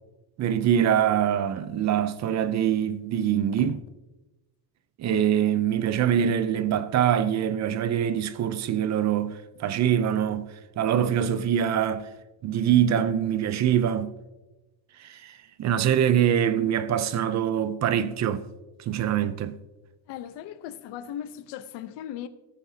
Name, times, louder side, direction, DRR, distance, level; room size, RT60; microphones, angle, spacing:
voice 1, 0.4-3.8 5.0-10.5 10.8-12.1 12.4-14.1 15.0-18.4 18.8-19.6, right 9 dB, 40° right, 0.6 m, -24 dB
voice 2, 20.1-22.3, left 10 dB, 80° left, 0.8 m, -38 dB
18.0 x 9.2 x 2.8 m
cardioid pair, 165°, 41 cm